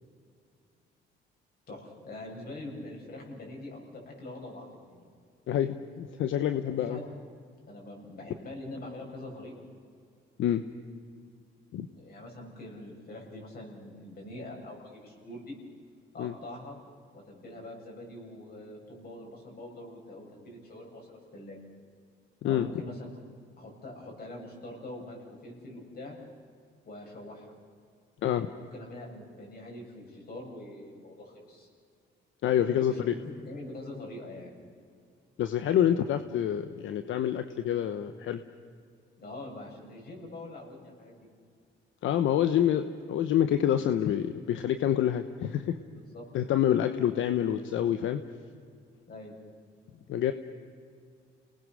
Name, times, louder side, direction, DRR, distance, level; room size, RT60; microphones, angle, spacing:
voice 1, 1.7-5.1 6.7-7.1 7.7-9.6 11.9-15.6 16.1-16.8 17.1-21.6 22.4-23.1 23.6-26.2 26.9-27.5 28.6-31.7 32.6-34.5 39.2-41.3 45.9-46.3 49.1-49.3, left 1 dB, 50° left, 0 dB, 7.8 m, -44 dB
voice 2, 5.5-7.0 10.4-10.6 11.7-11.9 16.2-16.3 22.4-22.7 28.2-28.5 32.4-33.1 35.4-38.4 42.0-45.8 46.3-48.2 50.1-50.3, left 10 dB, 80° left, 10 dB, 1.0 m, -27 dB
29.5 x 19.5 x 6.4 m, 2.2 s
cardioid pair, 90°, 20 cm